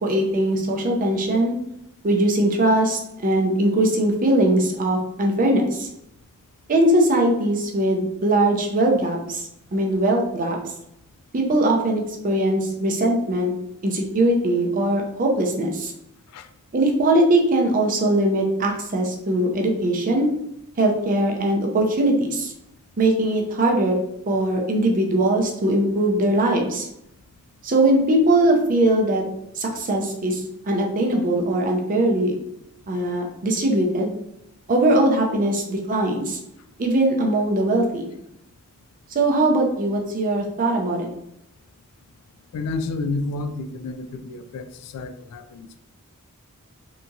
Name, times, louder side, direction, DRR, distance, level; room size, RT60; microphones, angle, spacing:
voice 1, 0.0-1.6 2.0-5.9 6.7-10.6 11.3-13.5 13.8-15.9 16.7-20.3 20.8-22.5 23.0-24.0 24.3-26.9 27.6-29.2 29.6-32.3 32.9-34.2 34.7-36.4 36.8-38.1 39.1-41.1, right 1 dB, 40° right, 1 dB, 0.5 m, -21 dB
voice 2, 42.5-45.8, left 3 dB, 85° left, 12 dB, 0.3 m, -30 dB
2.8 x 2.6 x 2.3 m, 0.81 s
head